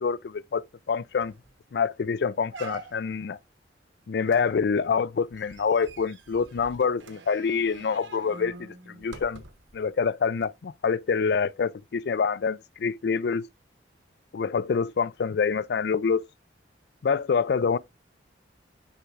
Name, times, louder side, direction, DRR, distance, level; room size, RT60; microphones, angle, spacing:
voice 1, 0.0-1.3 1.7-3.4 4.1-9.4 9.7-13.5 14.3-16.2 17.0-17.8, left 5 dB, 60° left, 0.4 m, -26 dB
sound 1, 0.8-0.9 1.2-1.5 1.9-2.0 2.5-3.3 4.3-9.8 10.4-10.5, right 3 dB, 80° right, 1.1 m, -46 dB
9.9 x 4.6 x 2.4 m
head